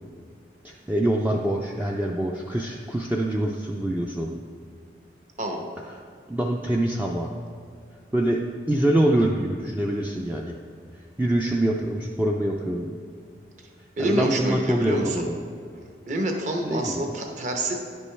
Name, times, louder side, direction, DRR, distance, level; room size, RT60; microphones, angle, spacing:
voice 1, 0.6-4.4 6.3-7.3 8.1-10.6 11.2-13.0 14.0-15.4 16.6-17.0, right 1 dB, 10° right, -1 dB, 0.3 m, -25 dB
voice 2, 14.0-15.2 16.1-17.8, right 1 dB, 45° right, 3 dB, 0.9 m, -27 dB
10.5 x 5.3 x 3.2 m, 2.3 s
head